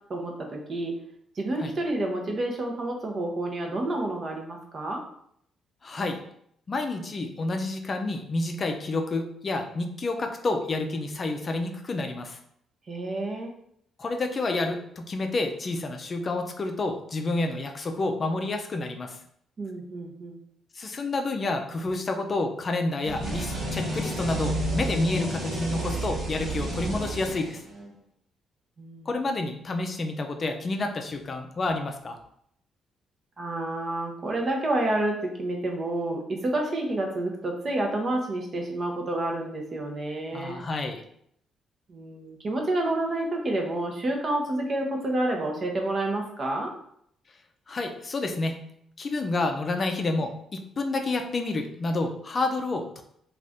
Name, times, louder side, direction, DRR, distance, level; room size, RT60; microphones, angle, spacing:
voice 1, 0.1-0.9 1.4-5.0 12.9-13.5 19.6-20.4 28.8-29.1 33.4-40.6 41.9-46.7, right 1 dB, 45° right, 1 dB, 0.7 m, -29 dB
voice 2, 5.8-6.2 6.7-12.4 14.0-19.2 20.7-27.6 29.1-32.2 40.3-41.0 47.7-48.6 49.0-53.0, left 2 dB, 40° left, 5 dB, 0.4 m, -29 dB
sound 1, 23.0-27.9, right 1 dB, 75° right, 0.9 m, -31 dB
2.5 x 2.4 x 3.4 m, 0.69 s
cardioid pair, 90°, 0 cm